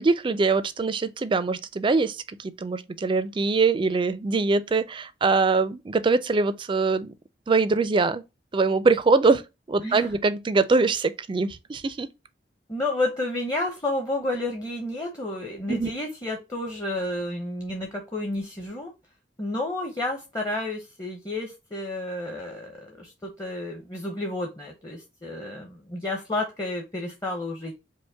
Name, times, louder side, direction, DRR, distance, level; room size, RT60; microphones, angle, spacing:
voice 1, 0.0-7.1 7.5-8.2 8.5-9.4 9.7-12.1 15.7-15.9, right 4 dB, 30° right, 0.3 m, -23 dB
voice 2, 12.7-18.9 19.4-27.7, left 2 dB, 20° left, 0.7 m, -31 dB
5.1 x 2.1 x 3.3 m
head